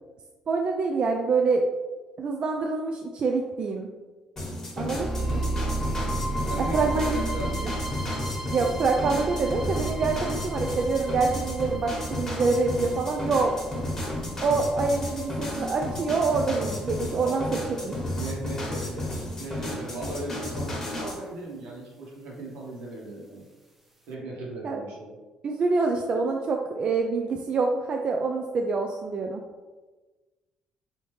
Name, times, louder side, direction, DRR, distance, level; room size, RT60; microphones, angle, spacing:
voice 1, 0.5-1.6 2.2-3.9 4.8-5.1 6.7-7.2 8.5-13.5 14.4-17.4 17.8-17.9 24.6-24.8 25.4-29.4, right 4 dB, 50° right, 2 dB, 0.3 m, -26 dB
sound 1, 4.4-21.2, left 1 dB, 20° left, 1.3 m, -33 dB
sound 2, 4.8-18.8, right 2 dB, 10° right, 0.6 m, -34 dB
voice 2, 5.1-5.6 6.4-7.6 17.2-17.9 18.1-19.1 19.4-23.5 24.1-25.1, right 2 dB, 85° right, -4 dB, 1.1 m, -37 dB
3.3 x 2.7 x 3.1 m, 1.2 s
cardioid pair, 80°, 2 cm